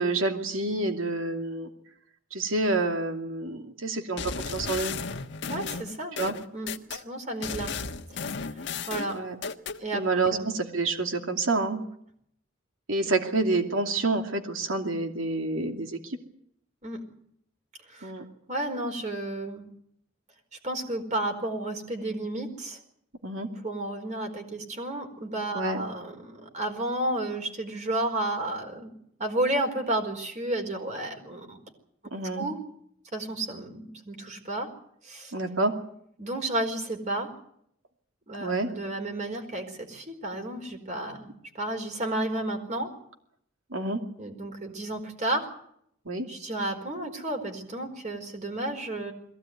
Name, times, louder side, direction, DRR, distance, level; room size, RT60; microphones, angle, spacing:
voice 1, 0.0-1.7 2.3-4.9 6.2-6.4 9.1-9.4 9.9-11.8 12.9-16.2 18.0-18.3 23.2-23.5 25.5-25.8 32.1-32.5 35.3-35.7 38.4-38.7 43.7-44.0 46.1-46.3, right 3 dB, 80° right, 4 dB, 2.7 m, -28 dB
sound 1, 4.2-7.0 7.4-9.8, left 5 dB, 60° left, 1.4 m, -34 dB
voice 2, 5.5-6.2 6.5-7.7 8.9-9.1 9.8-10.0 10.3-10.5 16.8-17.0 17.9-18.1 18.5-19.7 20.6-22.8 23.6-28.9 29.2-31.6 32.4-32.6 33.1-34.7 35.0-35.3 36.2-37.3 38.3-41.3 41.6-42.9 44.2-45.5 46.3-49.1, right 1 dB, 35° right, 5 dB, 4.6 m, -32 dB
22.0 x 16.5 x 9.4 m, 0.70 s
head